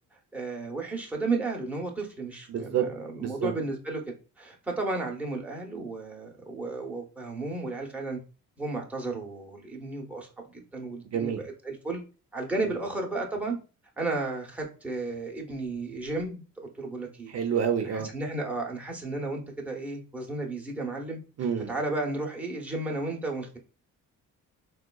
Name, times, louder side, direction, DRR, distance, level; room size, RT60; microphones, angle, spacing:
voice 1, 0.3-4.0 4.4-8.2 8.6-12.0 12.3-13.6 14.0-17.3 17.8-21.2 21.7-23.6, right 2 dB, 5° right, 0.7 m, -33 dB
voice 2, 2.5-2.9 3.2-3.5 11.1-11.4 17.3-18.1 21.4-21.7, right 8 dB, 55° right, 0.5 m, -28 dB
3.6 x 2.2 x 2.3 m
cardioid pair, 90°, 30 cm